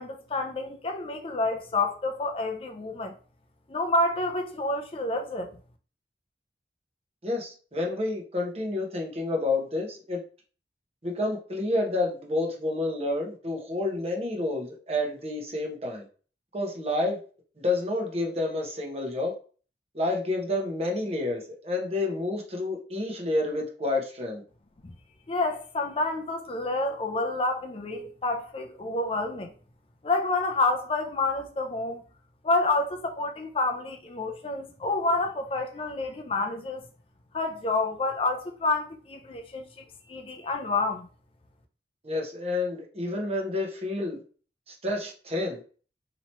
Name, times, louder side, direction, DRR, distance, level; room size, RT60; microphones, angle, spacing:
voice 1, 0.0-3.1 3.7-5.5 24.8-24.9 25.3-29.5 30.0-32.0 32.4-36.9 37.3-41.1, left 2 dB, 30° left, 0.4 m, -28 dB
voice 2, 7.2-10.2 11.0-16.0 16.5-17.2 17.6-19.3 19.9-24.4 42.0-44.2 44.7-45.6, left 2 dB, 35° right, 1.0 m, -29 dB
3.0 x 2.9 x 4.3 m
head